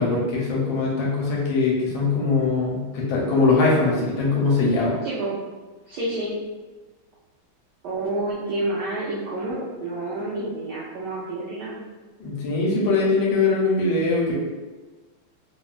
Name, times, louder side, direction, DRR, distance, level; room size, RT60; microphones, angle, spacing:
voice 1, 0.0-4.9 12.2-14.3, left 3 dB, 75° left, -4 dB, 1.3 m, -21 dB
voice 2, 5.0-5.4 5.9-6.4 7.8-11.8, right 2 dB, 75° right, -8 dB, 1.0 m, -29 dB
3.4 x 2.2 x 2.3 m, 1.3 s
omnidirectional pair, 2.3 m